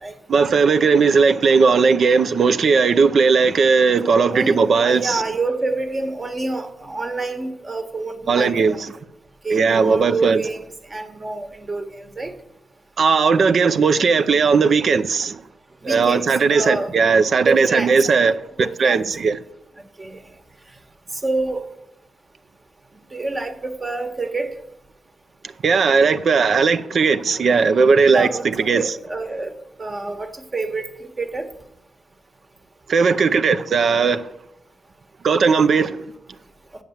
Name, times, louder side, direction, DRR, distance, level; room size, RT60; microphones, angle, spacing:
voice 1, 0.3-5.2 8.3-8.9 9.5-10.4 13.0-15.4 15.8-19.4 25.6-28.9 32.9-34.3 35.2-36.0, right 5 dB, 65° right, 0.6 m, -17 dB
voice 2, 4.3-8.8 9.4-12.3 15.8-16.9 17.4-18.0 18.6-19.1 20.0-20.2 21.2-21.6 23.1-24.6 28.1-28.5 28.7-29.5 29.8-31.5, right 3 dB, 35° right, 1.4 m, -27 dB
7.9 x 7.2 x 7.2 m
cardioid pair, 55°, 0 cm